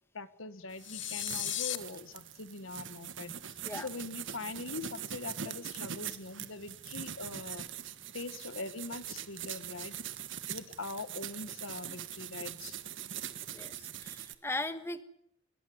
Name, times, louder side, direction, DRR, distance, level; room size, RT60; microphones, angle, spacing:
voice 1, 0.1-7.7 8.1-10.0 10.5-12.8, left 3 dB, 90° left, 12 dB, 1.6 m, -42 dB
sound 1, 0.7-14.4, right 9 dB, 70° right, 1.6 m, -42 dB
sound 2, 0.8-1.8, left 13 dB, 65° left, 1.4 m, -35 dB
voice 2, 13.5-15.0, left 2 dB, 10° left, 10 dB, 1.3 m, -38 dB
25.5 x 21.0 x 8.1 m, 0.75 s
head